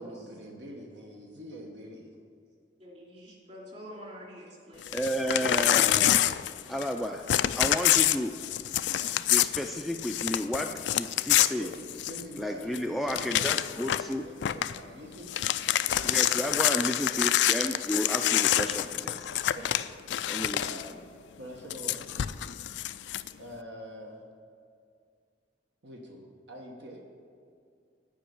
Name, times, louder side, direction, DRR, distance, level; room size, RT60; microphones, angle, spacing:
voice 1, 0.0-2.1 11.6-16.3 18.7-19.0 19.5-19.9 20.1-20.2 20.6-21.0 21.4-22.0 23.4-24.3 25.8-27.1, equal, 75° right, 0 dB, 1.2 m, -45 dB
voice 2, 2.8-5.0, equal, 40° right, -3 dB, 2.9 m, -46 dB
Crumpling crinkling / Tearing, 4.8-7.0 7.3-12.4 12.7-12.8 13.1-14.1 14.4-14.8 15.1-20.9 21.7-23.3, left 12 dB, 80° left, 0.3 m, -27 dB
voice 3, 4.9-6.2 6.7-7.2 7.6-8.3 9.3-11.7 12.4-14.2 16.0-19.2 20.3-20.6, equal, ahead, 3 dB, 0.4 m, -32 dB
10.0 x 5.3 x 7.9 m, 2.3 s
head